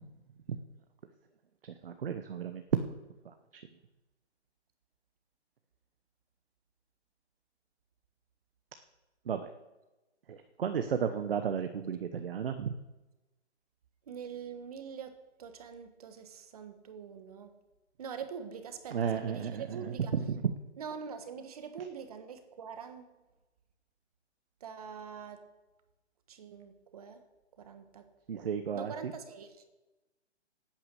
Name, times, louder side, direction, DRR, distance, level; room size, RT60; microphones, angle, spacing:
voice 1, 1.6-2.9 3.2-3.6 9.3-9.5 10.3-12.7 18.9-19.6 20.1-20.5 28.3-28.9, right 7 dB, 55° right, 8 dB, 1.0 m, -33 dB
voice 2, 14.1-17.6 18.0-20.1 20.8-23.1 24.6-25.5 26.3-27.2 27.6-28.5 28.7-29.6, right 7 dB, 35° right, 8 dB, 1.2 m, -44 dB
11.5 x 8.8 x 8.2 m, 1.1 s
hypercardioid pair, 165°, 35 cm